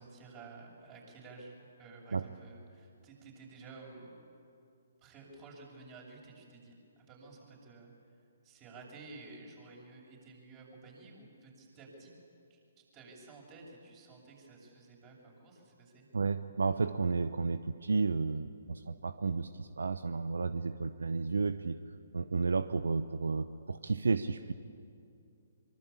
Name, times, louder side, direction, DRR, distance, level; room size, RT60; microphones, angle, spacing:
voice 1, 0.0-4.1 5.0-7.9 8.4-12.1 12.5-12.6 12.9-16.1, right 3 dB, 25° right, 0 dB, 7.5 m, -52 dB
voice 2, 16.1-21.8 22.1-24.5, right 4 dB, 75° right, 13 dB, 0.7 m, -32 dB
24.5 x 24.0 x 8.6 m, 2.5 s
figure-of-eight pair, 135°, 0 cm